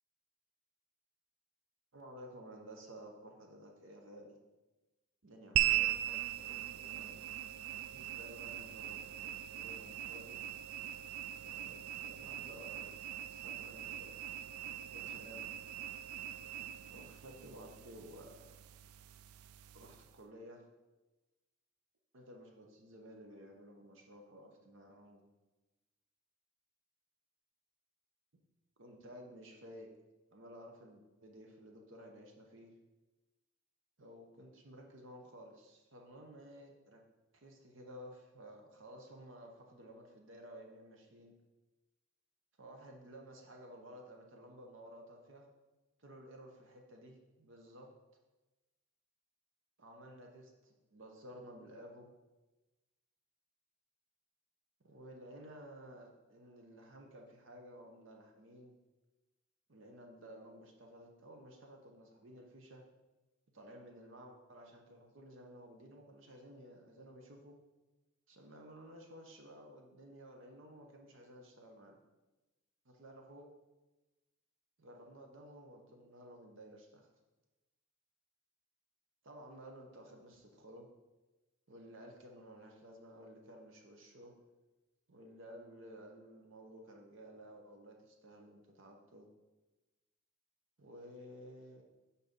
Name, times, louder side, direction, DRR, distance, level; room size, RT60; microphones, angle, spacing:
voice 1, 1.9-4.4 5.2-7.2 7.9-10.4 11.4-14.5 14.9-15.5 16.9-18.6 19.7-20.7 22.1-25.2 28.8-29.9 30.3-32.7 34.0-37.0 37.3-41.3 42.6-45.5 46.0-47.9 49.8-52.1 54.8-58.7 59.7-62.8 63.5-67.6 68.3-72.0 72.8-73.5 74.8-77.1 79.2-80.9 81.7-84.3 85.1-89.3 90.8-91.8, equal, 60° right, 2 dB, 0.8 m, -54 dB
sound 1, 5.6-20.2, right 13 dB, 90° right, 0.3 m, -40 dB
6.1 x 4.1 x 5.2 m, 1.1 s
head